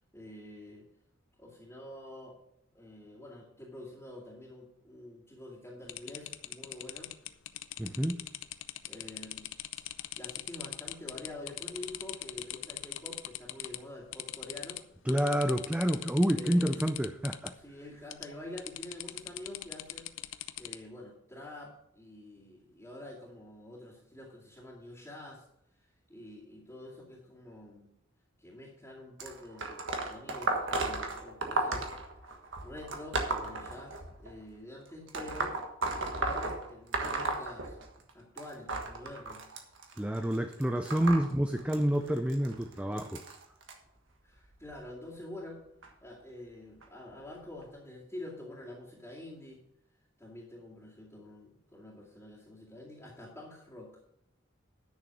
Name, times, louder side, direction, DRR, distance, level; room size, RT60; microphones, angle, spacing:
voice 1, 0.1-0.9 1.4-2.4 2.7-7.1 8.9-9.5 10.2-14.8 16.3-16.9 17.5-20.1 20.6-25.5 25.8-27.9 28.4-29.7 30.0-32.0 32.6-35.6 35.9-37.8 38.1-39.5 44.2-45.6 46.0-49.6 50.2-54.0, left 1 dB, 10° left, -9 dB, 2.3 m, -47 dB
sound 1, 5.9-13.8 14.1-14.8 15.1-17.5 18.1-18.3 18.6-20.7, left 14 dB, 75° left, 0.5 m, -40 dB
voice 2, 7.8-8.3 15.1-17.5 40.0-43.2, equal, 5° right, 7 dB, 0.4 m, -28 dB
sound 2, 29.2-34.3 35.1-38.1 38.4-43.7 44.5-44.8 45.8-45.9 46.8-46.9 47.6-47.7, right 2 dB, 70° right, 1.5 m, -35 dB
10.5 x 6.6 x 6.0 m, 0.78 s
head